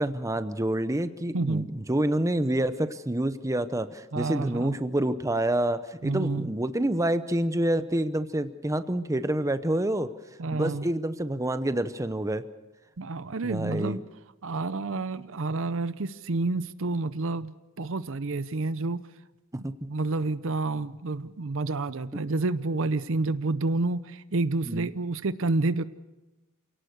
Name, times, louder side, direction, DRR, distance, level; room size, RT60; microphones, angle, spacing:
voice 1, 0.0-10.1 10.5-12.4 13.4-14.0 19.6-19.7 24.7-24.9, right 1 dB, 15° right, 11 dB, 0.8 m, -27 dB
voice 2, 1.3-1.7 4.1-4.8 6.0-6.5 10.4-10.9 13.0-14.0 14.4-17.5 17.8-19.0 19.9-25.8, right 3 dB, 65° right, 14 dB, 0.7 m, -29 dB
28.0 x 17.5 x 6.6 m, 1.1 s
head